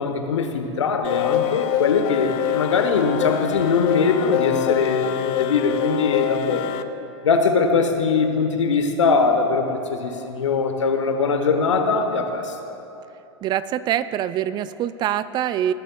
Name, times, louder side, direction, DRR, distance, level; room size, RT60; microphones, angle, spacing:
voice 1, 0.0-6.6 7.2-12.6, left 4 dB, 80° left, 6 dB, 1.1 m, -21 dB
sound 1, 1.0-6.8, left 12 dB, 45° left, 0.6 m, -25 dB
voice 2, 13.4-15.7, right 11 dB, 30° right, 15 dB, 0.3 m, -24 dB
19.0 x 11.0 x 2.3 m, 2.8 s
hypercardioid pair, 100°, 15 cm